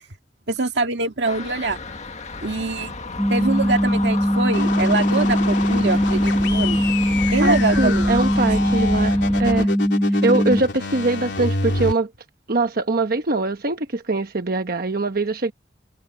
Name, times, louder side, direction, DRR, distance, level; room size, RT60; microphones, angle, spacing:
voice 1, 0.5-1.8 2.4-3.0 3.3-6.8 7.3-8.5, right 3 dB, 70° right, 2.0 m, -24 dB
sound 1, 1.2-9.7, left 2 dB, 40° left, 1.7 m, -31 dB
sound 2, 3.2-10.6, equal, ahead, 2.3 m, -20 dB
sound 3, 4.5-11.9, left 3 dB, 70° left, 3.5 m, -28 dB
voice 2, 7.2-9.7 10.2-12.1 12.5-15.5, right 2 dB, 55° right, 1.1 m, -23 dB
head